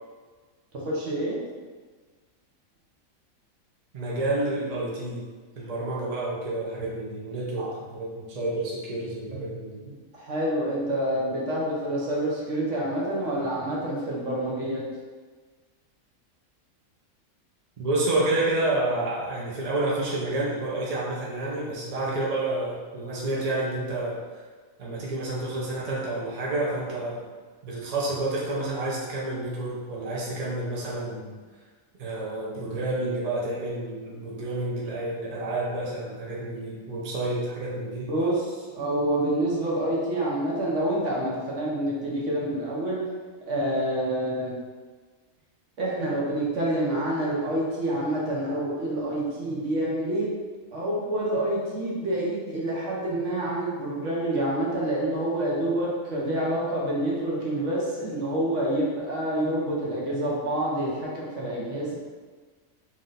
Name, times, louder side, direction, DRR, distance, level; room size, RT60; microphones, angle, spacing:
voice 1, 0.7-1.4 7.6-7.7 10.1-14.8 38.1-43.0 43.5-44.5 45.8-50.4 50.7-61.9, right 1 dB, 65° right, -5 dB, 1.1 m, -27 dB
voice 2, 3.9-5.2 5.6-9.9 17.8-24.2 24.8-27.3 27.6-31.3 32.0-38.1, right 2 dB, 35° right, -5 dB, 0.7 m, -29 dB
3.2 x 2.7 x 3.8 m, 1.4 s
omnidirectional pair, 1.5 m